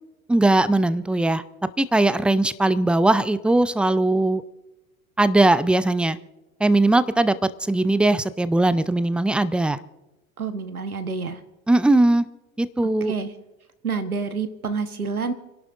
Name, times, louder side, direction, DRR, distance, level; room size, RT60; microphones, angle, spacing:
voice 1, 0.3-1.4 1.8-4.4 5.2-6.2 6.6-9.8 11.7-12.2 12.6-13.1, right 2 dB, 5° right, 16 dB, 0.4 m, -19 dB
voice 2, 10.4-11.4 13.1-13.3 13.8-15.3, right 5 dB, 90° right, 10 dB, 1.2 m, -28 dB
29.0 x 11.5 x 2.6 m, 1.0 s
figure-of-eight pair, 75°, 43 cm